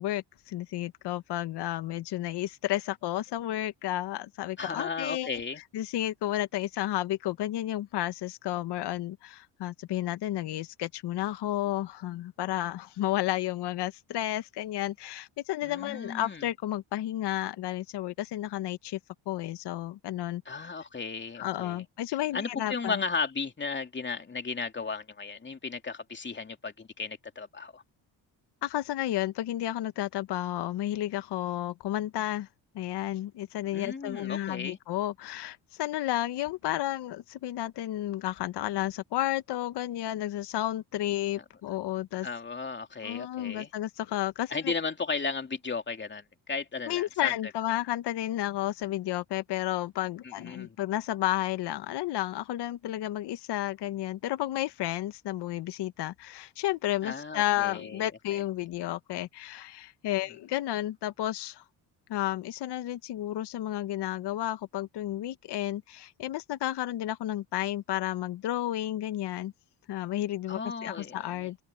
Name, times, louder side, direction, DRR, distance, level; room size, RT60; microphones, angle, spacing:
voice 1, 0.0-5.3 5.7-19.0 19.3-20.4 21.4-23.0 28.6-32.5 32.7-42.3 43.0-44.7 46.9-61.6 62.1-69.5 69.9-71.6, left 14 dB, 65° left, 1.1 m, -32 dB
voice 2, 4.6-5.6 15.6-16.4 20.4-21.8 22.3-27.8 33.7-34.8 42.2-43.7 44.5-47.3 50.2-50.8 57.0-58.4 70.5-71.5, left 4 dB, 25° left, 2.9 m, -35 dB
cardioid pair, 100°, 43 cm